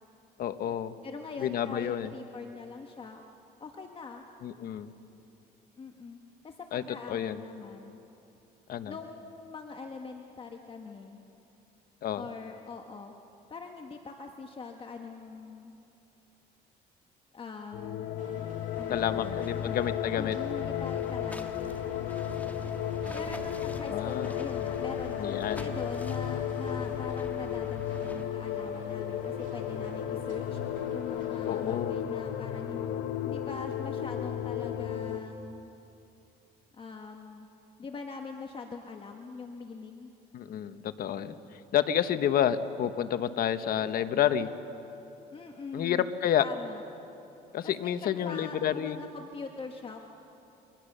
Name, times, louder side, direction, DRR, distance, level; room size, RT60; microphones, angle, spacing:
voice 1, 0.4-1.0 1.4-2.1 4.4-4.9 6.7-7.4 8.7-8.9 12.0-12.2 18.9-20.3 23.9-24.3 25.2-25.7 31.4-31.9 40.3-44.5 45.7-46.4 47.5-49.0, left 10 dB, 60° left, 10 dB, 1.2 m, -29 dB
voice 2, 1.0-3.2 3.6-4.2 5.8-6.2 6.4-8.0 8.8-11.2 12.1-13.1 13.5-15.7 17.3-18.0 18.7-19.6 20.2-21.5 23.1-25.3 25.6-30.6 30.9-32.9 33.2-35.7 36.7-37.5 37.8-40.1 45.3-46.1 46.4-46.8 47.6-50.0, left 4 dB, 30° left, 3 dB, 1.5 m, -42 dB
sound 1, 17.7-35.2, left 10 dB, 90° left, 1.2 m, -34 dB
sound 2, 18.2-31.9, right 5 dB, 50° right, 2.5 m, -50 dB
sound 3, 18.7-28.3, left 1 dB, 10° left, 1.6 m, -47 dB
29.0 x 23.5 x 6.8 m, 2.9 s
cardioid pair, 110°, 17 cm